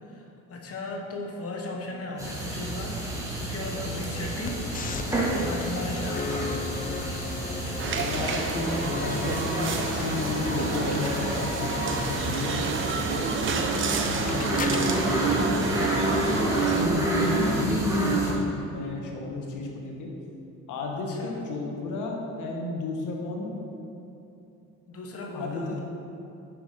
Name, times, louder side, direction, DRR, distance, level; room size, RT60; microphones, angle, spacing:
voice 1, 0.1-3.0 3.4-4.7 5.1-6.5 14.8-15.2 21.1-21.4 24.9-25.8, left 2 dB, 50° left, 1 dB, 1.1 m, -36 dB
sound 1, 2.2-18.3, right 2 dB, 10° right, 1.5 m, -29 dB
sound 2, 4.4-16.4, left 5 dB, 30° left, 0.4 m, -37 dB
sound 3, 7.8-16.9, right 4 dB, 40° right, 0.6 m, -30 dB
voice 2, 7.9-20.1 20.7-23.5 25.3-25.8, left 2 dB, 80° left, 0 dB, 1.1 m, -32 dB
6.2 x 4.8 x 4.9 m, 2.8 s
cardioid pair, 90°, 30 cm